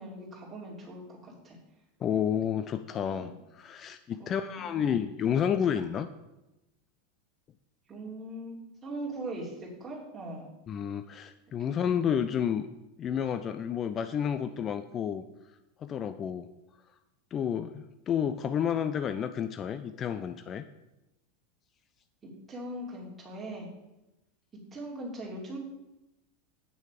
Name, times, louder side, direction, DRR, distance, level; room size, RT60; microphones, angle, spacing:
voice 1, 0.0-1.6 3.1-3.3 4.2-5.0 7.9-10.5 11.7-12.1 22.2-23.7 24.7-25.6, right 1 dB, 20° right, -4 dB, 2.9 m, -41 dB
voice 2, 2.0-6.1 10.7-12.7 13.0-15.2 15.8-16.5 17.3-20.6, left 8 dB, 30° left, 10 dB, 0.4 m, -30 dB
8.5 x 6.3 x 5.0 m, 0.97 s
figure-of-eight pair, 85°, 0 cm